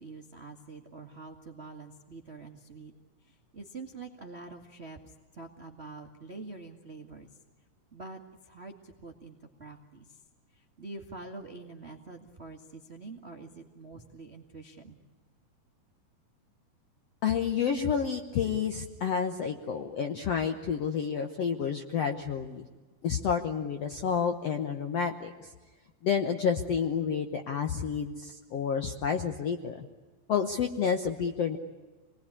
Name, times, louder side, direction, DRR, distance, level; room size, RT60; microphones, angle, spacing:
voice 1, 0.0-2.9 3.2-7.3 7.9-10.2 10.5-15.0, right 3 dB, 80° right, 3 dB, 0.5 m, -46 dB
voice 2, 17.2-22.7 23.0-25.5 26.0-29.9 30.3-31.6, left 7 dB, 75° left, 6 dB, 1.4 m, -30 dB
27.0 x 20.0 x 9.9 m, 1.3 s
omnidirectional pair, 4.4 m